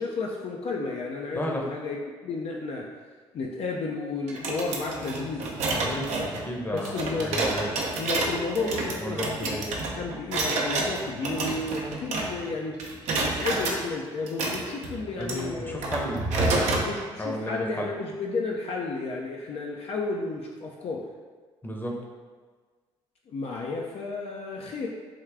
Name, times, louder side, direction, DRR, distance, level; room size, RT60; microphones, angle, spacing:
voice 1, 0.0-2.8 3.3-5.5 6.7-7.5 8.0-9.5 9.9-12.8 13.2-15.8 16.8-21.0 23.3-24.9, left 3 dB, 55° left, -1 dB, 0.4 m, -32 dB
voice 2, 1.3-1.7 5.7-7.7 9.0-9.7 15.2-16.8 17.2-17.9 21.6-22.0, left 1 dB, 15° left, -1 dB, 0.7 m, -33 dB
sound 1, 4.3-12.5 12.8-13.8 14.3-16.9, right 2 dB, 70° right, 0.6 m, -29 dB
3.5 x 2.3 x 3.3 m, 1.5 s
hypercardioid pair, 50°, 13 cm